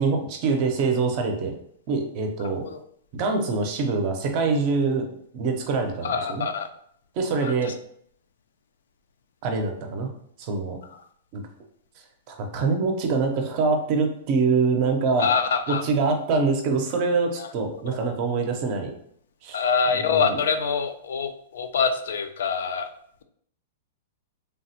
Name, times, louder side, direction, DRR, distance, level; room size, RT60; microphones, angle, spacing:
voice 1, 0.0-1.5 1.9-2.6 3.1-5.1 5.3-6.4 7.2-7.7 9.4-10.1 10.4-10.8 11.3-11.4 12.3-15.3 15.7-18.9 19.4-19.6 20.0-20.4, right 4 dB, 35° right, 4 dB, 0.5 m, -24 dB
voice 2, 2.4-2.8 6.0-6.7 7.4-7.7 10.9-11.0 15.2-15.8 17.4-18.0 19.5-22.9, left 5 dB, 90° left, 7 dB, 0.4 m, -26 dB
3.3 x 2.0 x 2.8 m, 0.65 s
supercardioid pair, 165°, 0 cm